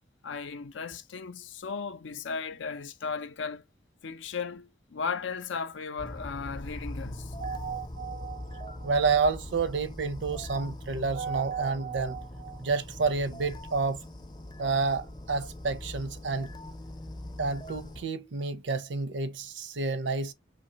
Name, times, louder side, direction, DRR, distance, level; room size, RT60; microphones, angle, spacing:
voice 1, 0.2-3.6 4.0-7.3, left 5 dB, 85° left, 0.6 m, -36 dB
sound 1, 6.0-18.1, left 1 dB, 20° left, 0.5 m, -42 dB
voice 2, 7.4-14.0 14.6-16.5 17.4-20.3, right 4 dB, 70° right, 0.6 m, -30 dB
5.1 x 3.1 x 2.8 m
head